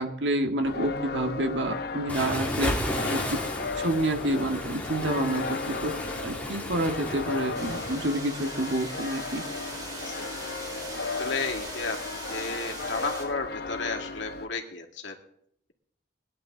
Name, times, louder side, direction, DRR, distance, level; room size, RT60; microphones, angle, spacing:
voice 1, 0.0-2.7 3.1-3.2 3.7-5.9 6.2-9.4, right 1 dB, 70° right, 5 dB, 1.7 m, -28 dB
sound 1, 0.6-14.5, left 4 dB, 55° left, 0.7 m, -36 dB
Waves surf, 2.1-8.0, left 1 dB, 10° left, 2.3 m, -33 dB
sound 2, 7.5-13.2, right 1 dB, 25° right, 5.5 m, -39 dB
voice 2, 11.2-12.0 12.3-15.1, left 3 dB, 75° left, 3 dB, 2.3 m, -33 dB
20.5 x 11.0 x 3.9 m, 0.71 s
head